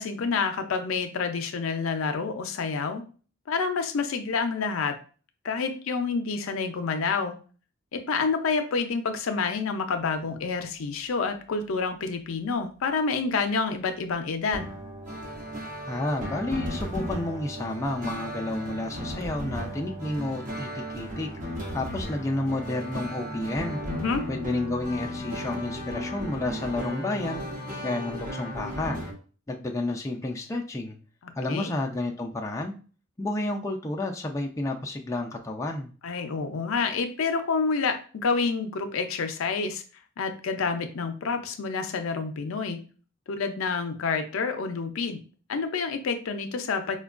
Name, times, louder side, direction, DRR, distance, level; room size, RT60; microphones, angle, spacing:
voice 1, 0.0-3.0 3.5-5.0 5.4-7.4 7.9-14.7 23.9-24.2 31.2-31.7 36.0-39.8 40.2-42.8 43.3-45.2 45.5-47.0, left 4 dB, 70° left, 7 dB, 0.5 m, -28 dB
sound 1, 14.5-29.1, equal, 40° right, 0.9 m, -35 dB
voice 2, 15.9-21.3 21.7-23.8 24.3-27.4 27.8-29.0 29.5-31.0 31.4-32.7 33.2-35.9, left 2 dB, 15° left, 1 dB, 0.3 m, -31 dB
4.4 x 2.2 x 2.4 m, 0.39 s
head